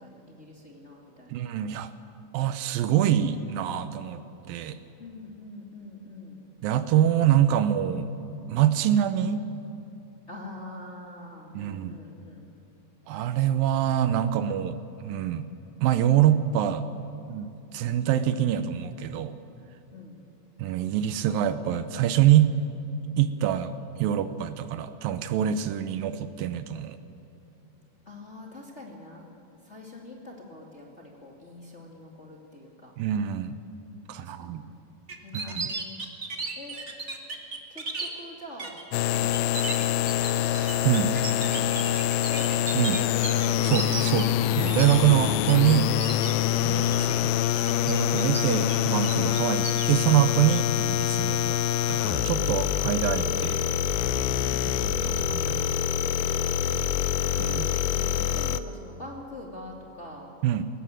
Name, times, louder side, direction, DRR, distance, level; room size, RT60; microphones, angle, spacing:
voice 1, 0.0-1.4 5.0-6.4 10.3-12.5 19.9-20.2 28.1-29.3 29.6-32.9 34.2-36.0 36.6-36.8 37.7-38.7 54.1-55.3 57.8-60.3, left 2 dB, 25° left, -1 dB, 2.0 m, -45 dB
voice 2, 1.3-1.9 2.3-4.2 4.5-4.8 6.6-8.1 8.5-9.5 11.6-11.9 13.1-15.5 15.8-16.8 17.3-19.3 20.6-22.5 23.2-27.0 33.0-33.6 34.1-34.6 35.3-35.7 40.9-41.1 42.7-43.0 43.6-45.9 46.7-47.3 47.9-53.6 55.0-55.8 57.4-57.7 60.4-60.7, right 11 dB, 80° right, 12 dB, 2.4 m, -25 dB
sound 1, 35.1-38.1 38.6-38.8 39.1-45.5 45.8-46.3 46.7-47.1 47.6-48.8 49.0-50.0, right 4 dB, 45° right, 0.9 m, -35 dB
sound 2, 38.9-58.6, left 12 dB, 85° left, 2.6 m, -25 dB
21.0 x 18.5 x 7.6 m, 2.9 s
omnidirectional pair, 4.2 m